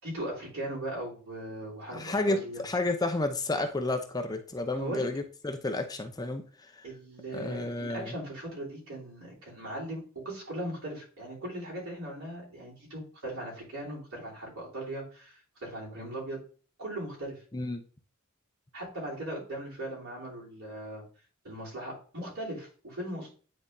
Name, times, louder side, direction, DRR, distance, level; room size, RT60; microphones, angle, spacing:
voice 1, 0.0-2.6 4.7-5.1 6.8-16.4 16.8-17.4 18.7-21.0 21.4-23.3, right 1 dB, 75° right, -5 dB, 3.2 m, -39 dB
voice 2, 1.9-6.4 7.3-8.1 17.5-17.8, left 2 dB, 20° left, 6 dB, 0.5 m, -31 dB
9.4 x 4.1 x 2.6 m, 0.40 s
head